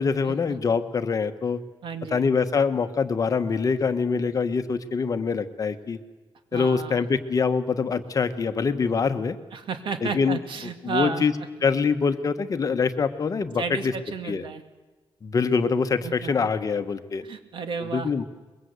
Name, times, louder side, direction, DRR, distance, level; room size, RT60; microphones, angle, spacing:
voice 1, 0.0-1.6 2.1-6.0 6.5-9.4 10.0-10.4 10.8-11.3 11.6-13.9 14.2-14.4 15.2-17.2 17.9-18.2, left 5 dB, 40° left, 9 dB, 1.2 m, -24 dB
voice 2, 1.8-2.3 6.5-7.1 9.5-11.3 13.6-14.6 16.0-16.5 17.2-18.1, right 5 dB, 65° right, 8 dB, 2.2 m, -32 dB
24.0 x 22.0 x 8.2 m, 1.2 s
wide cardioid pair, 140°, 9 cm